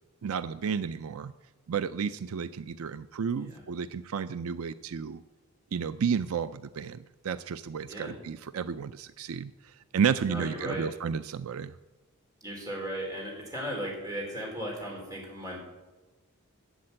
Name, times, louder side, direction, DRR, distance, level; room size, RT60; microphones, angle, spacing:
voice 1, 0.2-1.3 1.7-5.2 5.7-11.7, right 6 dB, 75° right, 13 dB, 0.4 m, -32 dB
voice 2, 7.8-8.2 10.2-10.8 12.4-15.6, equal, 15° right, -2 dB, 4.5 m, -36 dB
12.0 x 7.6 x 8.8 m, 1.2 s
head